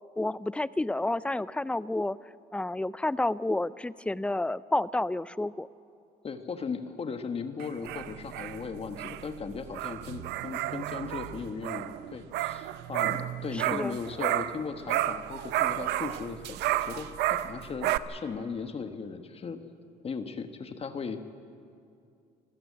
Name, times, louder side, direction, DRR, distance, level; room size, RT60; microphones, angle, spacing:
voice 1, 0.2-2.2 2.5-5.7 13.5-14.0, left 2 dB, 5° left, 18 dB, 0.4 m, -30 dB
voice 2, 6.2-19.6 20.0-21.2, left 5 dB, 35° left, 8 dB, 1.3 m, -37 dB
sound 1, 7.6-14.6 14.9-18.0, right 14 dB, 85° right, 0.7 m, -32 dB
25.5 x 15.0 x 8.5 m, 2.5 s
cardioid pair, 110°, 17 cm